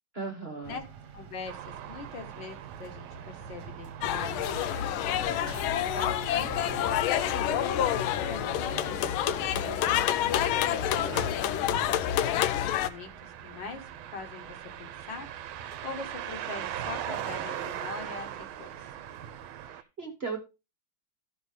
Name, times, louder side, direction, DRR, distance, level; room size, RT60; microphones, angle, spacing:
voice 1, 0.1-0.8 9.5-10.3 19.6-20.4, right 4 dB, 35° right, 3 dB, 1.2 m, -38 dB
sound 1, 0.6-19.7, right 6 dB, 60° right, 1.4 m, -47 dB
voice 2, 1.1-5.2 5.5-9.3 10.2-13.8 14.1-15.3 15.8-18.7, left 4 dB, 65° left, 5 dB, 1.9 m, -42 dB
sound 2, 1.5-19.8, right 11 dB, 85° right, 1.5 m, -42 dB
sound 3, 4.0-12.9, left 11 dB, 80° left, 1.4 m, -28 dB
14.0 x 5.6 x 3.2 m, 0.28 s
omnidirectional pair, 2.3 m